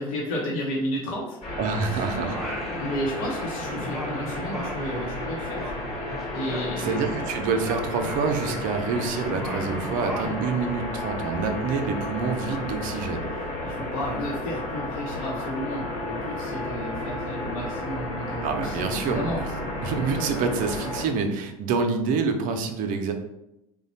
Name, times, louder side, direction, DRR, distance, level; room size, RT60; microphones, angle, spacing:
voice 1, 0.0-1.4 1.8-2.1 2.8-5.7 6.3-7.0 13.6-19.4, equal, 70° left, -3 dB, 0.8 m, -32 dB
sound 1, 1.4-21.1, left 1 dB, 30° left, 1.2 m, -33 dB
voice 2, 1.6-2.5 6.8-13.3 18.4-19.5 19.8-23.1, right 5 dB, 50° right, 6 dB, 0.6 m, -27 dB
Singing, 2.2-3.4 3.7-7.3 7.6-10.8, equal, ahead, 0.7 m, -37 dB
3.1 x 2.2 x 4.0 m, 0.88 s
hypercardioid pair, 80°, 18 cm